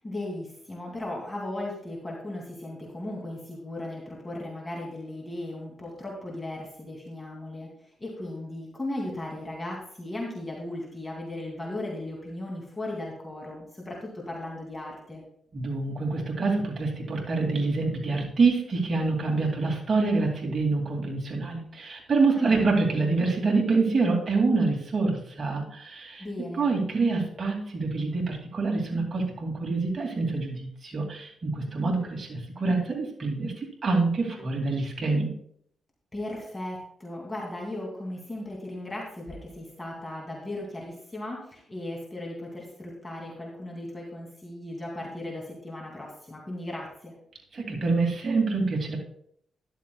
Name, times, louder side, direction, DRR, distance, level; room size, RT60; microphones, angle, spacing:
voice 1, 0.0-7.7 8.0-15.2 22.3-22.7 26.2-26.7 36.1-47.1, left 1 dB, 20° left, -2 dB, 2.6 m, -36 dB
voice 2, 15.5-26.3 26.6-35.3 47.5-49.0, right 3 dB, 40° right, -1 dB, 2.5 m, -26 dB
13.0 x 11.0 x 2.3 m, 0.65 s
cardioid pair, 85°, 0 cm